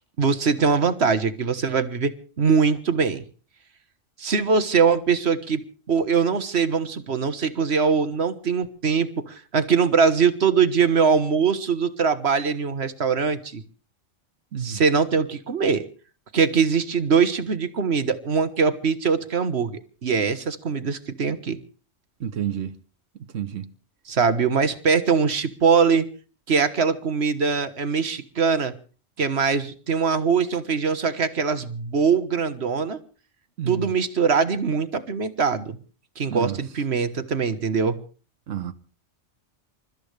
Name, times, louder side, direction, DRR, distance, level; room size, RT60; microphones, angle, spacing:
voice 1, 0.2-3.2 4.2-5.6 5.9-13.6 14.6-15.8 16.3-21.6 24.1-26.1 26.5-28.7 29.2-33.0 33.7-35.8 36.2-38.0, right 5 dB, 60° right, 1.5 m, -22 dB
voice 2, 22.2-22.8 23.3-23.7 33.6-33.9 36.3-36.6 38.5-38.7, right 9 dB, 85° right, 1.3 m, -29 dB
28.0 x 13.5 x 3.4 m
omnidirectional pair, 1.2 m